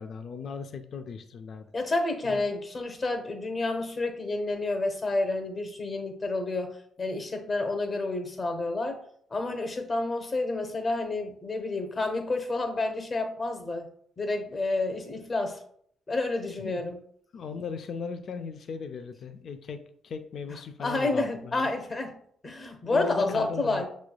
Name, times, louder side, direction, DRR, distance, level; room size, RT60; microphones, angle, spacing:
voice 1, 0.0-1.7 2.3-2.4 16.6-16.8 17.3-21.7 22.8-23.8, left 5 dB, 60° left, 8 dB, 0.4 m, -37 dB
voice 2, 1.7-9.0 9.3-13.9 14.2-15.6 16.1-17.0 20.8-22.2 22.4-23.9, left 2 dB, 35° left, 5 dB, 0.8 m, -29 dB
5.9 x 3.1 x 2.2 m, 0.63 s
cardioid pair, 90°, 0 cm